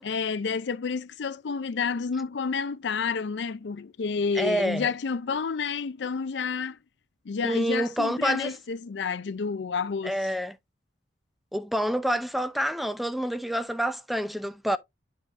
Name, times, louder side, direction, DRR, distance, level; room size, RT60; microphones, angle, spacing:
voice 1, 0.0-6.8 7.3-10.2, left 5 dB, 70° left, 0.5 m, -30 dB
voice 2, 4.3-4.9 7.4-8.5 10.0-10.6 11.5-14.8, equal, ahead, 0.5 m, -27 dB
9.8 x 5.4 x 2.5 m
head